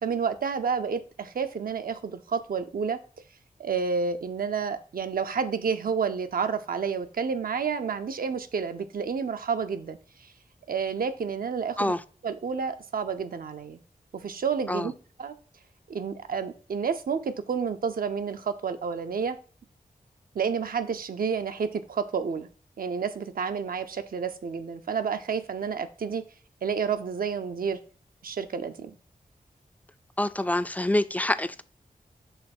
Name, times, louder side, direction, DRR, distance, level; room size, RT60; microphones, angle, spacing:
voice 1, 0.0-3.0 3.6-10.0 10.7-11.9 12.2-13.8 14.1-14.9 15.2-15.3 15.9-19.4 20.3-22.5 22.8-26.2 26.6-27.8 28.2-28.9, right 6 dB, 80° right, 0.6 m, -30 dB
voice 2, 30.2-31.6, left 1 dB, 10° left, 0.3 m, -26 dB
5.6 x 3.5 x 5.9 m
wide cardioid pair, 95°, 15 cm